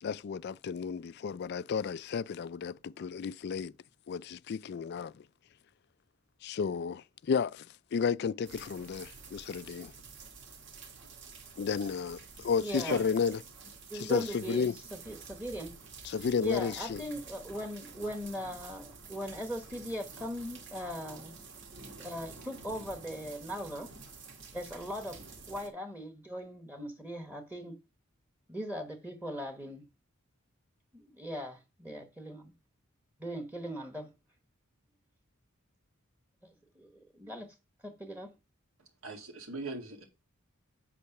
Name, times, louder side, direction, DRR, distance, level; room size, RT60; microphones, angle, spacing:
voice 1, 0.0-3.7 4.1-5.1 6.4-7.6 7.9-9.9 11.6-13.4 13.9-14.8 16.0-17.0, left 6 dB, 50° left, 0.3 m, -32 dB
sound 1, 8.4-25.7, right 4 dB, 55° right, 1.8 m, -50 dB
voice 2, 12.6-13.0 13.9-15.8 16.4-21.3 22.0-23.9 24.5-25.2 25.5-27.8 28.5-29.8 30.9-32.5 33.2-34.1 36.4-37.5 37.8-38.3, equal, 10° right, 1.0 m, -39 dB
voice 3, 39.0-40.0, right 3 dB, 75° right, 2.1 m, -39 dB
8.3 x 4.4 x 5.9 m
head